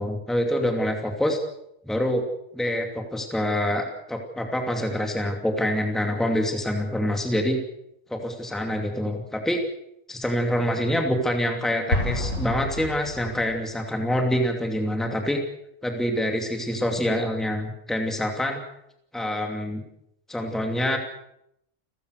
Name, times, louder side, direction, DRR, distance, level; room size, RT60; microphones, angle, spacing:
voice 1, 0.0-1.4 1.9-2.3 2.5-7.6 8.1-9.6 10.1-15.4 15.8-18.6 19.1-19.8 20.3-21.0, equal, ahead, 3 dB, 2.6 m, -26 dB
Explosion, 11.9-13.6, left 1 dB, 85° left, 4.3 m, -28 dB
30.0 x 15.0 x 6.6 m, 0.77 s
omnidirectional pair, 1.3 m